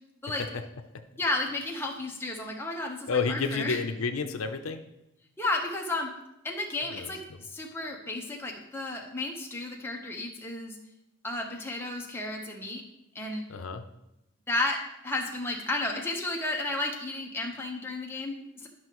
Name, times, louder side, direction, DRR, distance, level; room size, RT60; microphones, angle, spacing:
voice 1, 1.2-3.8 5.4-6.1 6.4-10.8 11.2-12.8 13.1-13.4 14.5-18.7, left 2 dB, 10° left, 0 dB, 0.9 m, -33 dB
voice 2, 3.1-4.8 6.9-7.1 13.5-13.8, left 4 dB, 80° left, 7 dB, 0.6 m, -30 dB
11.5 x 6.0 x 3.0 m, 0.88 s
head